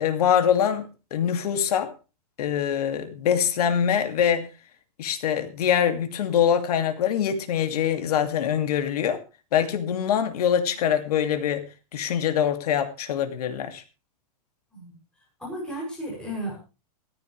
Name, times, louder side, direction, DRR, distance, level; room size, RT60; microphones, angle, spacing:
voice 1, 0.0-1.9 2.4-4.5 5.0-9.2 9.5-11.7 11.9-13.8, left 8 dB, 70° left, 2.6 m, -24 dB
voice 2, 15.4-16.5, right 1 dB, 5° left, 7.3 m, -33 dB
16.5 x 14.5 x 3.4 m
supercardioid pair, 160°, 21 cm